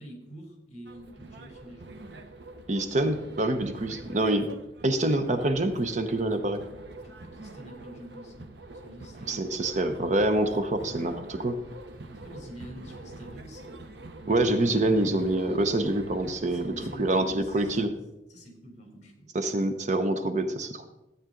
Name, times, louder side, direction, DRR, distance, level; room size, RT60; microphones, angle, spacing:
voice 1, 0.0-1.9 3.9-4.2 6.9-8.5 8.8-9.5 12.2-13.8 16.5-17.8 18.3-19.3, equal, 40° left, 2 dB, 3.3 m, -47 dB
sound 1, 0.9-17.9, right 2 dB, 70° right, 0.9 m, -45 dB
voice 2, 2.7-4.5 4.8-6.6 9.3-11.6 14.3-16.7 17.0-17.9 19.3-20.8, right 1 dB, 40° right, 8 dB, 0.8 m, -26 dB
14.0 x 8.8 x 3.8 m, 0.98 s
head